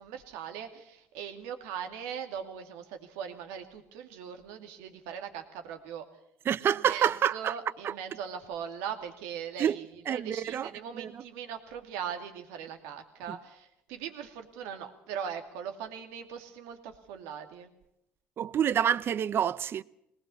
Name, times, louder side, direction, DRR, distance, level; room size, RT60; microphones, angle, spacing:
voice 1, 0.0-6.0 6.6-17.7, right 8 dB, 85° right, 2.4 m, -40 dB
voice 2, 6.5-7.5 7.8-7.9 9.6-9.8 10.1-10.7 10.9-11.1 13.3-13.4 18.4-19.8, right 9 dB, 50° right, 0.7 m, -27 dB
21.5 x 19.0 x 7.0 m
supercardioid pair, 80°, 5 cm